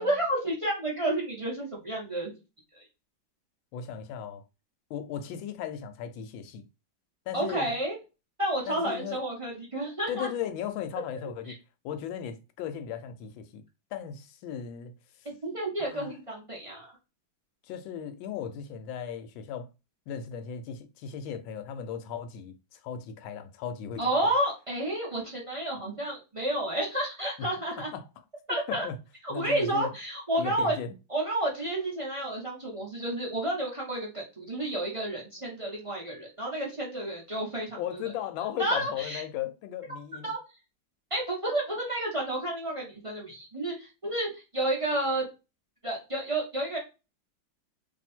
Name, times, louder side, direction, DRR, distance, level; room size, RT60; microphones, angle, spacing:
voice 1, 0.0-2.4 7.3-8.0 8.4-10.3 15.2-16.9 24.0-27.9 28.5-28.9 29.2-30.8 31.1-37.8 38.6-39.2 40.2-40.4 41.1-45.2 45.8-46.8, right 1 dB, 30° right, 0.5 m, -30 dB
voice 2, 3.7-4.4 4.9-6.7 7.3-7.8 8.7-9.2 10.1-11.6 11.8-13.6 13.9-14.9 15.8-16.1 17.7-19.7 20.1-24.3 27.4-27.5 27.8-28.0 28.5-29.0 29.3-29.9 30.4-30.9 37.8-40.3, left 8 dB, 85° left, 1.4 m, -36 dB
2.9 x 2.7 x 4.2 m
omnidirectional pair, 2.1 m